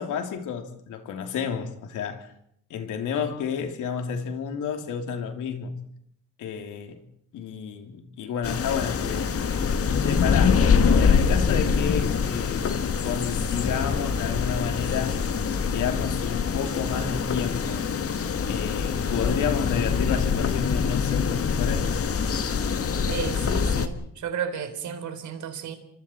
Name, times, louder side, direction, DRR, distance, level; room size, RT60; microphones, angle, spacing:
voice 1, 0.0-2.3 2.7-5.7 6.4-7.0 7.3-9.5 10.0-12.7 13.0-15.2 15.7-17.9 18.5-21.9, left 7 dB, 80° left, 3.3 m, -31 dB
sound 1, 8.4-23.9, left 6 dB, 50° left, 1.9 m, -24 dB
voice 2, 23.1-25.8, right 7 dB, 70° right, 3.9 m, -33 dB
29.0 x 25.5 x 4.6 m
cardioid pair, 90°, 30 cm